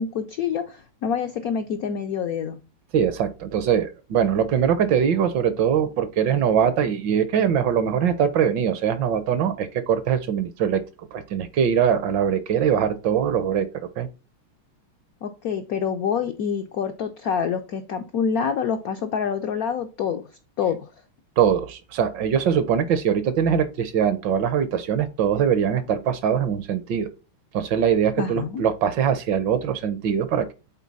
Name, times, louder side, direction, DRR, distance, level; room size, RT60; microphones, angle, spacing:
voice 1, 0.0-2.6 15.2-20.2 20.6-20.8 28.2-28.6, left 7 dB, 80° left, 0.8 m, -26 dB
voice 2, 2.9-10.8 11.1-14.1 21.4-27.1 27.5-30.5, right 8 dB, 70° right, 1.2 m, -22 dB
8.4 x 3.9 x 4.0 m
omnidirectional pair, 2.3 m